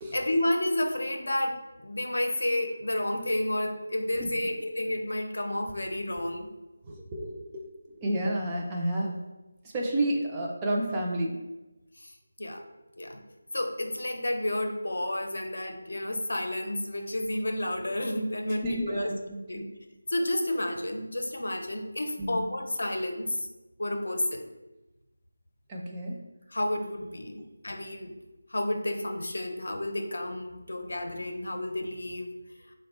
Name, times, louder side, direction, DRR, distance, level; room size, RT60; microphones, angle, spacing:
voice 1, 0.1-6.5 12.0-12.1 12.4-12.6 13.0-13.2 13.5-19.1 19.5-19.7 20.1-23.5 23.8-24.5 26.5-28.1 28.5-32.3, left 1 dB, 75° left, 4 dB, 0.6 m, -31 dB
voice 2, 6.8-9.2 9.7-11.4 18.5-19.7 22.2-22.4 25.7-26.2, right 1 dB, 15° right, -2 dB, 0.4 m, -31 dB
3.4 x 2.1 x 4.1 m, 1.0 s
figure-of-eight pair, 170°, 0 cm